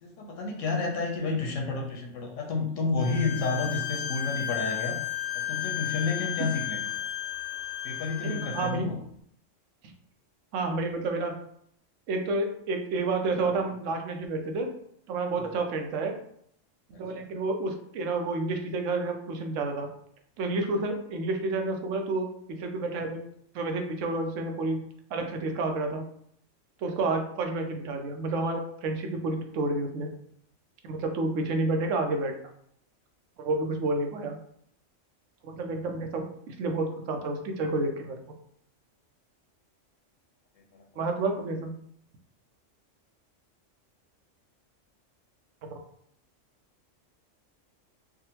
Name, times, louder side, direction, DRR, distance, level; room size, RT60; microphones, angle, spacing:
voice 1, 0.0-5.0 5.5-7.0 7.8-9.0 40.7-40.8, left 3 dB, 90° left, 1 dB, 1.0 m, -30 dB
Bowed string instrument, 3.0-8.7, left 12 dB, 50° left, 0.5 m, -33 dB
voice 2, 8.2-8.9 10.5-11.4 12.1-14.7 15.1-16.1 16.9-19.9 20.4-23.2 23.5-24.8 25.1-26.1 26.8-30.1 30.9-32.4 33.4-34.4 35.4-38.2 41.0-41.8 45.6-45.7, right 2 dB, 85° right, 4 dB, 0.9 m, -30 dB
3.6 x 2.0 x 2.8 m, 0.68 s
omnidirectional pair, 1.3 m